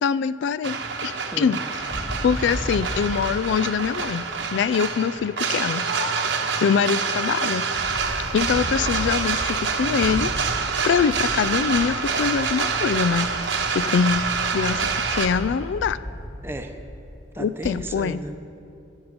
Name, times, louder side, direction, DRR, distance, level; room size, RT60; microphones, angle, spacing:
voice 1, 0.0-1.9 2.2-5.9 6.6-7.7 8.3-10.3 10.8-13.3 13.7-14.3 14.5-16.0 17.4-18.2, left 6 dB, 70° left, 15 dB, 0.3 m, -24 dB
sound 1, 0.6-15.3, right 5 dB, 75° right, 1.1 m, -26 dB
sound 2, 1.7-3.3 7.7-17.0 17.6-17.7, equal, 25° left, 2.2 m, -35 dB
voice 2, 17.3-18.4, right 1 dB, 15° right, 6 dB, 0.8 m, -34 dB
20.0 x 7.1 x 5.2 m, 2.8 s
head